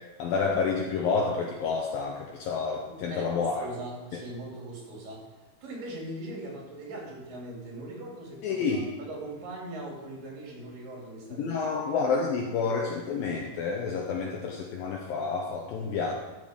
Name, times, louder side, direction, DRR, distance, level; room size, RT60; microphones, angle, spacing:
voice 1, 0.2-3.7 8.4-8.9 11.4-16.1, left 5 dB, 75° left, -1 dB, 2.5 m, -29 dB
voice 2, 2.9-5.3 5.6-11.6, right 1 dB, 60° right, -2 dB, 4.3 m, -40 dB
13.0 x 6.1 x 5.1 m, 1.2 s
omnidirectional pair, 4.5 m